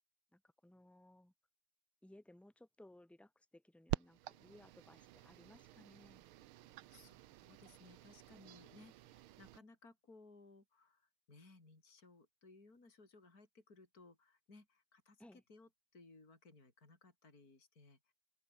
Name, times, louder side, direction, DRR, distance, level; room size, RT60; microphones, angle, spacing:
voice 1, 0.3-1.3 2.0-6.2 15.2-15.4, left 1 dB, ahead, 3.3 m, -61 dB
sound 1, 3.9-9.6, right 15 dB, 80° right, 1.6 m, -48 dB
voice 2, 6.9-18.1, left 3 dB, 45° left, 5.4 m, -62 dB
omnidirectional pair, 2.3 m